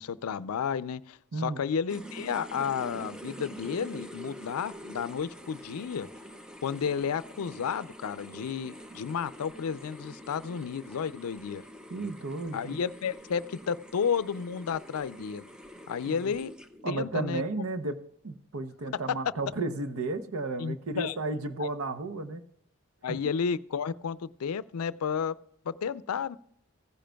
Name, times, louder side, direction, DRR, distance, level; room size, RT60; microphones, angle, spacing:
voice 1, 0.0-6.1 6.6-11.6 12.5-15.5 15.9-16.5 16.9-17.4 17.8-17.9 18.9-19.0 20.6-21.2 21.6-21.7 23.0-25.4 25.7-26.4, left 6 dB, 85° left, 0.4 m, -32 dB
sound 1, 1.9-17.0, equal, 5° right, 0.5 m, -46 dB
voice 2, 11.9-12.8 16.1-16.3 16.8-22.4 23.1-23.2, right 2 dB, 80° right, 0.8 m, -33 dB
16.0 x 10.0 x 2.3 m
head